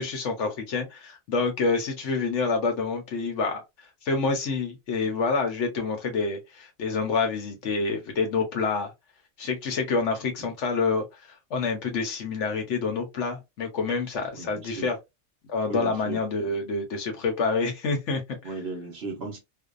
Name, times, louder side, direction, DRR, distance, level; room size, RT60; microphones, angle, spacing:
voice 1, 0.0-3.6 4.0-8.9 9.4-15.0 15.5-18.5, left 4 dB, 65° left, 1.0 m, -27 dB
voice 2, 14.3-14.9 15.7-16.2 18.4-19.4, right 3 dB, 55° right, 0.9 m, -36 dB
2.5 x 2.2 x 2.4 m
omnidirectional pair, 1.4 m